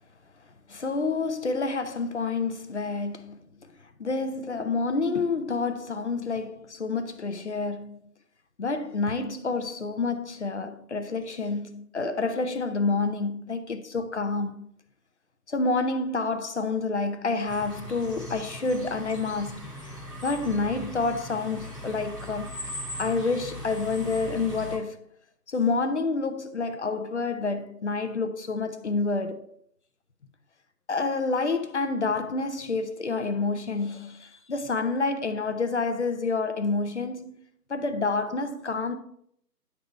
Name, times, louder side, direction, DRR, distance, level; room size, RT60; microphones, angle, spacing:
voice 1, 0.7-3.4 4.0-8.1 8.6-14.7 15.5-22.6 23.0-25.0 25.5-29.5 30.9-37.4 37.7-39.0, left 3 dB, 45° left, 0.6 m, -28 dB
sound 1, 17.5-24.8, equal, 5° right, 1.9 m, -39 dB
10.5 x 4.0 x 4.4 m
figure-of-eight pair, 155°, 50 cm